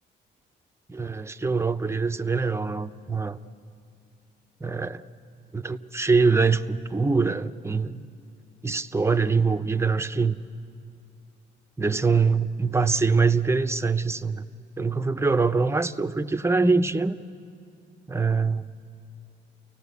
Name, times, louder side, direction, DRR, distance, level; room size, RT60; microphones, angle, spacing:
voice 1, 0.9-3.4 4.6-5.0 5.5-8.0 8.6-10.4 11.8-14.4 14.8-17.2 18.1-18.7, right 4 dB, 15° right, 9 dB, 0.7 m, -24 dB
29.0 x 18.0 x 8.3 m, 2.4 s
cardioid pair, 90°, 20 cm